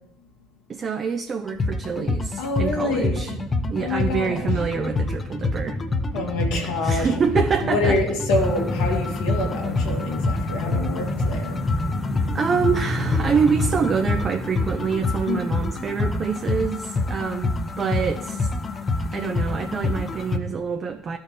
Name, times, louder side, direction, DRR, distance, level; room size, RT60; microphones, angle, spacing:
voice 1, 0.7-3.3 3.7-5.8 6.8-8.0 12.3-18.5 19.1-21.2, right 6 dB, 45° right, 6 dB, 0.6 m, -26 dB
sound 1, 1.5-20.4, left 3 dB, 35° left, 0.8 m, -27 dB
voice 2, 2.4-3.3 3.8-4.5 6.1-7.1 7.6-11.6 15.3-15.5, left 2 dB, 75° left, -1 dB, 1.5 m, -27 dB
sound 2, 2.8-16.0 16.3-16.4, equal, 15° left, 1.3 m, -32 dB
13.0 x 4.4 x 3.6 m, 0.84 s
hypercardioid pair, 60°, 0 cm